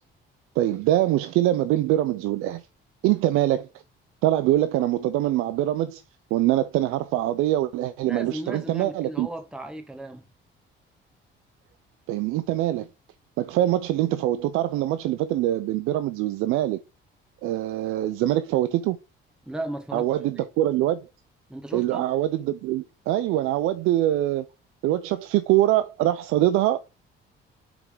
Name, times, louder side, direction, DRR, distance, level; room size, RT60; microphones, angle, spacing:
voice 1, 0.6-2.6 3.0-3.7 4.2-6.0 6.3-9.3 12.1-12.9 13.4-16.8 17.4-19.0 19.9-21.0 21.7-24.5 24.8-26.8, right 14 dB, 90° right, 0.5 m, -23 dB
voice 2, 8.0-10.3 19.5-20.1 20.3-20.5 21.5-22.0, right 1 dB, 5° right, 1.1 m, -36 dB
6.9 x 3.6 x 4.9 m
cardioid pair, 95°, 21 cm